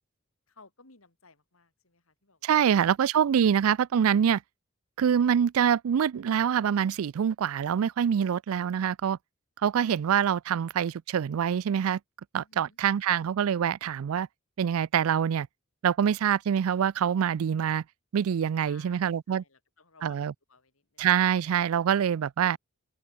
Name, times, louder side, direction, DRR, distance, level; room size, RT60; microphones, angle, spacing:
voice 1, 0.5-2.9 12.4-12.8 18.6-20.2 20.5-21.1, left 4 dB, 70° left, 3.8 m, -58 dB
voice 2, 2.4-4.4 5.0-9.2 9.6-12.0 12.3-14.3 14.6-15.5 15.8-17.8 18.1-19.4 20.0-20.3 21.0-22.6, right 8 dB, 75° right, 0.4 m, -25 dB
open air
head